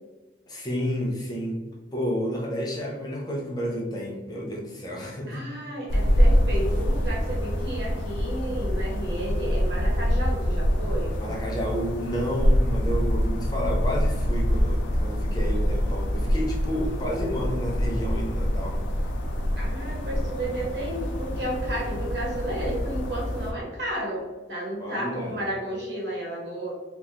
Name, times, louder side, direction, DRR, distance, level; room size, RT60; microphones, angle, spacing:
voice 1, 0.5-1.6 1.9-5.4 11.2-18.7 24.8-25.4, equal, 20° left, -2 dB, 0.5 m, -30 dB
voice 2, 5.3-11.1 19.6-26.7, right 1 dB, 65° right, -3 dB, 1.1 m, -32 dB
sound 1, 5.9-23.5, equal, 90° left, 0.5 m, -25 dB
3.6 x 2.4 x 2.8 m, 1.2 s
head